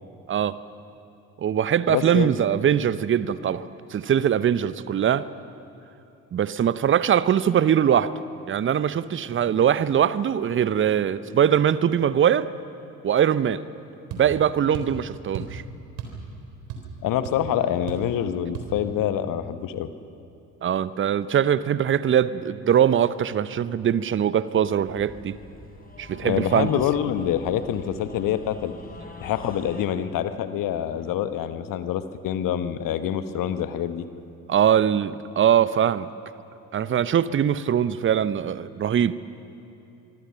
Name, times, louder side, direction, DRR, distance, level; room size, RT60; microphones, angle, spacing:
voice 1, 1.4-5.3 6.3-8.1 8.5-12.5 13.0-13.6 14.1-15.6 20.6-25.4 26.0-26.7 34.5-36.1 36.7-39.1, right 9 dB, 25° right, 16 dB, 0.8 m, -22 dB
voice 2, 1.9-2.3 17.0-19.9 26.2-28.7 29.2-34.1, left 10 dB, 45° left, 11 dB, 1.2 m, -26 dB
sound 1, 14.1-14.3 14.7-15.0 15.3-15.6 16.0-16.2 16.5-17.0 17.3-17.4 17.9-18.1 18.5-18.7, right 7 dB, 60° right, 3.9 m, -35 dB
sound 2, 24.9-29.9, left 1 dB, 20° left, 4.1 m, -44 dB
25.0 x 25.0 x 5.8 m, 2.9 s
figure-of-eight pair, 55°, 45 cm